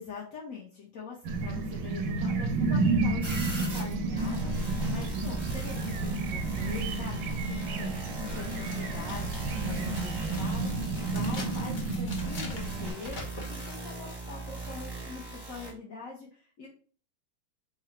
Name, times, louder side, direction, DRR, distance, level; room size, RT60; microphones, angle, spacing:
voice 1, 0.0-16.7, left 4 dB, 65° left, -3 dB, 0.8 m, -44 dB
sound 1, 1.2-12.9, right 3 dB, 75° right, 1.0 m, -31 dB
sound 2, 3.2-15.7, right 2 dB, 25° right, 0.5 m, -40 dB
sound 3, 7.7-7.8 8.3-13.7, left 3 dB, 85° left, 0.4 m, -45 dB
3.8 x 2.1 x 4.2 m, 0.42 s
omnidirectional pair, 2.2 m